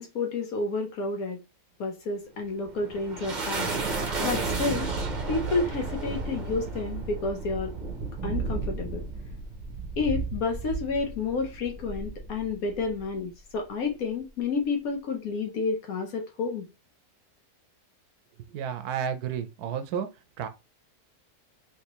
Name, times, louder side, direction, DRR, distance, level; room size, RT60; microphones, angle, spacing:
voice 1, 0.0-1.4 1.8-3.7 4.2-4.9 5.3-7.7 8.2-9.0 10.0-16.7, left 4 dB, 70° left, 1.2 m, -30 dB
sound 1, 2.4-13.1, right 4 dB, 40° right, 0.7 m, -33 dB
voice 2, 18.5-20.1 20.4-20.5, right 8 dB, 80° right, 1.1 m, -31 dB
3.4 x 3.0 x 2.9 m
omnidirectional pair, 1.7 m